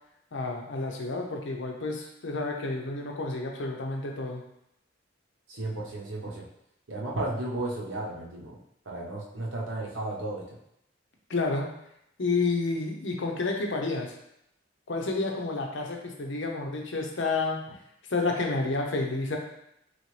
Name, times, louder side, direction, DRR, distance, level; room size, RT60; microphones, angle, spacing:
voice 1, 0.3-4.4 11.3-11.7 12.2-14.1 14.9-17.6 18.1-19.4, left 3 dB, 65° left, 1 dB, 0.7 m, -30 dB
voice 2, 5.5-6.4 6.9-8.6 8.9-10.4, right 2 dB, 75° right, -3 dB, 1.0 m, -34 dB
4.1 x 3.2 x 3.2 m, 0.78 s
head